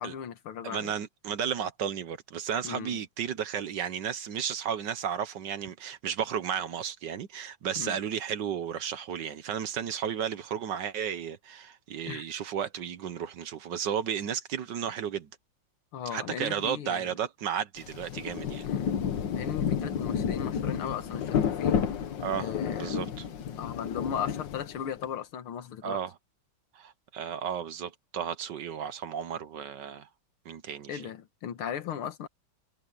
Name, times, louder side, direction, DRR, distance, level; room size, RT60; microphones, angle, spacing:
voice 1, 0.0-0.9 2.6-3.0 7.8-8.0 12.1-12.3 15.9-17.1 18.6-18.9 19.3-21.8 22.4-23.1 23.6-26.0 30.9-32.3, left 8 dB, 80° left, 2.2 m, -37 dB
voice 2, 0.6-15.3 16.1-18.7 22.2-23.2 25.8-26.1 26.7-30.1 30.4-31.1, right 8 dB, 60° right, 1.4 m, -33 dB
Rain, 17.8-25.0, left 7 dB, 60° left, 1.8 m, -31 dB
omnidirectional pair, 2.3 m